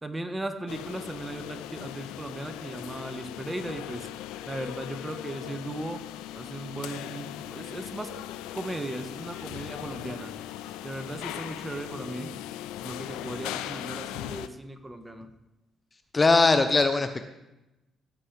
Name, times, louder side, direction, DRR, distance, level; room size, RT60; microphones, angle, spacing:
voice 1, 0.0-4.1 4.5-6.0 6.3-8.1 8.5-10.3 10.8-12.3 12.8-15.3, right 1 dB, 15° right, 7 dB, 1.4 m, -37 dB
sound 1, 0.7-14.5, left 12 dB, 90° left, 0.4 m, -39 dB
voice 2, 16.1-17.2, left 3 dB, 30° left, 9 dB, 0.8 m, -20 dB
16.0 x 7.8 x 3.5 m, 0.97 s
supercardioid pair, 60°, 0 cm